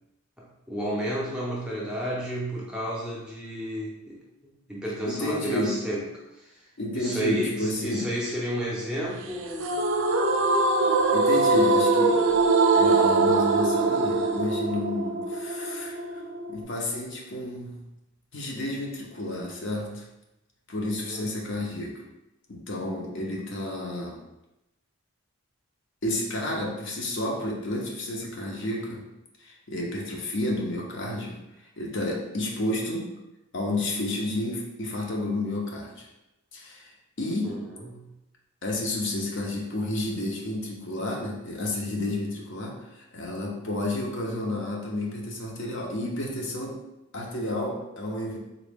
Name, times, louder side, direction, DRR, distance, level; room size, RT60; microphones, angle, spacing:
voice 1, 0.4-4.2 4.7-6.0 6.4-6.5 6.9-9.7 20.8-21.3 37.4-37.6 37.8-38.1, equal, 5° right, -5 dB, 0.6 m, -32 dB
voice 2, 5.0-5.7 6.8-8.1 11.1-12.4 12.7-16.2 16.5-17.8 18.3-20.0 20.7-22.0 22.5-24.2 26.0-29.0 29.4-33.1 33.5-36.1 36.5-37.6 38.6-46.8 47.1-48.4, left 1 dB, 55° left, -1 dB, 0.7 m, -31 dB
sound 1, 9.6-16.6, right 3 dB, 60° right, 0.3 m, -22 dB
3.7 x 2.2 x 3.5 m, 0.94 s
head